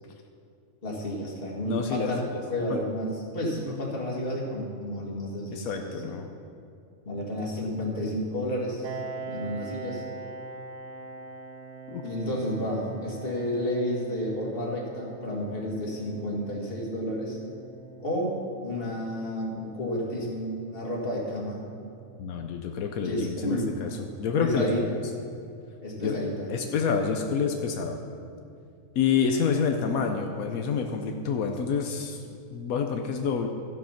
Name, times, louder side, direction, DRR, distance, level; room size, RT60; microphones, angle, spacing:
voice 1, 0.8-2.2 2.5-6.0 7.0-10.0 12.0-17.4 18.0-18.3 18.6-21.6 23.0-23.7 24.4-25.0 25.8-26.5, left 1 dB, 40° left, -2 dB, 2.1 m, -31 dB
voice 2, 1.7-2.1 2.7-2.8 5.5-6.3 11.9-12.0 22.2-23.9 24.2-24.7 26.0-26.2 26.5-28.0 28.9-32.2 32.5-33.5, left 6 dB, 85° left, 4 dB, 1.2 m, -28 dB
Piano, 8.8-24.2, right 4 dB, 60° right, 0.8 m, -43 dB
13.0 x 7.3 x 5.7 m, 2.5 s
omnidirectional pair, 1.4 m